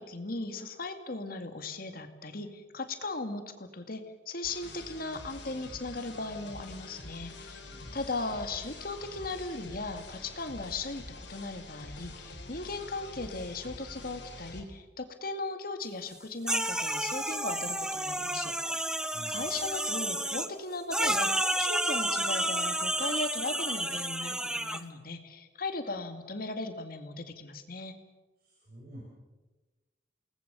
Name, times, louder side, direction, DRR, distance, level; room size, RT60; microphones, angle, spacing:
voice 1, 0.0-7.6 7.9-18.8 19.3-28.0, left 3 dB, 50° left, 7 dB, 2.2 m, -37 dB
sound 1, 4.4-14.6, left 2 dB, 70° left, 4.3 m, -46 dB
voice 2, 7.6-8.1 19.1-19.6 28.4-29.0, right 1 dB, 55° right, -4 dB, 6.4 m, -49 dB
sound 2, 16.5-20.5 20.9-24.8, right 1 dB, 5° right, 0.9 m, -31 dB
28.5 x 19.5 x 6.9 m, 1.2 s
head